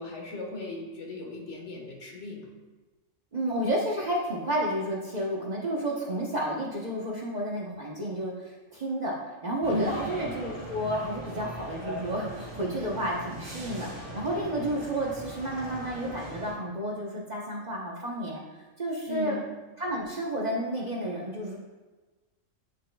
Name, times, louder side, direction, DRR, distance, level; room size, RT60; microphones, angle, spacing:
voice 1, 0.0-2.5 9.7-10.0 19.1-19.5, left 1 dB, 60° left, 0 dB, 1.6 m, -36 dB
voice 2, 3.3-9.2 9.4-18.4 18.8-19.4 19.8-21.6, right 1 dB, 35° right, -3 dB, 0.9 m, -31 dB
sound 1, 9.6-16.5, equal, 60° right, 2.3 m, -40 dB
8.5 x 7.2 x 2.3 m, 1.2 s
omnidirectional pair, 1.4 m